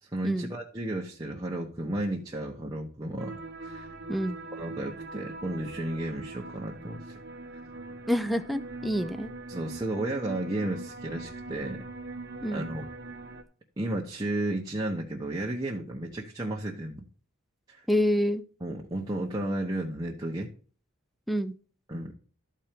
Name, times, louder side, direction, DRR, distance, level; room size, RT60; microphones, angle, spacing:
voice 1, 0.0-3.9 4.5-7.2 9.5-11.8 12.5-12.9 13.8-17.0 17.7-17.8 18.6-20.5 21.9-22.1, right 1 dB, 20° right, -2 dB, 1.1 m, -33 dB
sound 1, 3.2-13.4, right 3 dB, 50° right, 1.2 m, -42 dB
voice 2, 8.1-9.3 12.4-12.7 17.9-18.4 21.3-21.5, equal, ahead, 9 dB, 0.5 m, -27 dB
13.0 x 4.5 x 5.1 m, 0.40 s
head